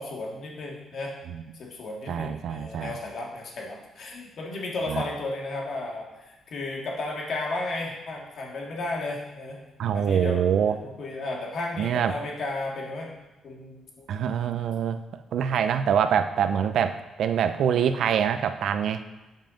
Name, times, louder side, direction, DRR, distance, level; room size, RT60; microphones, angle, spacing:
voice 1, 0.0-1.1 1.5-9.7 9.9-13.2 13.4-14.0, left 2 dB, 60° left, -1 dB, 1.9 m, -34 dB
voice 2, 2.1-2.9 4.9-5.0 9.8-10.8 11.8-12.1 14.1-15.0 15.3-19.0, right 8 dB, 70° right, 10 dB, 0.5 m, -25 dB
7.3 x 5.6 x 5.1 m, 1.1 s
cardioid pair, 90°, 0 cm